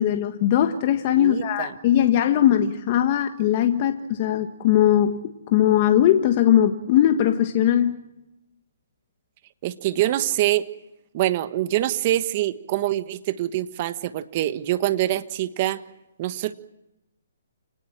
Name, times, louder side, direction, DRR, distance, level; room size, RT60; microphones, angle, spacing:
voice 1, 0.0-5.2 5.5-8.0, left 11 dB, 35° left, 6 dB, 1.6 m, -20 dB
voice 2, 1.2-1.7 9.6-10.7 11.1-15.8 16.2-16.5, right 14 dB, 35° right, 11 dB, 1.5 m, -25 dB
29.0 x 19.5 x 7.5 m, 0.91 s
hypercardioid pair, 150°, 0 cm